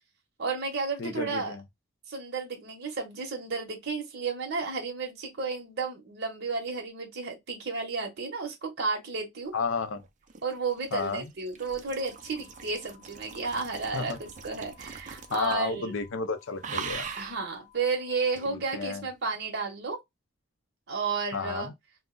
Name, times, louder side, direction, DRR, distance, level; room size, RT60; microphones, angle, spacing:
voice 1, 0.4-1.6 2.1-9.5 10.4-14.1 14.4-15.9 17.2-20.0 20.9-21.7, right 4 dB, 55° right, 0.8 m, -32 dB
voice 2, 1.0-1.6 9.5-10.0 10.9-11.3 13.9-14.2 15.3-17.1 18.5-19.1 21.3-21.7, left 4 dB, 65° left, 0.5 m, -32 dB
sound 1, 10.0-15.7 16.0-16.3 16.6-17.4 18.4-18.5, right 6 dB, 35° right, 0.4 m, -41 dB
sound 2, 12.0-18.5, left 12 dB, 30° left, 0.8 m, -59 dB
2.4 x 2.0 x 3.6 m
head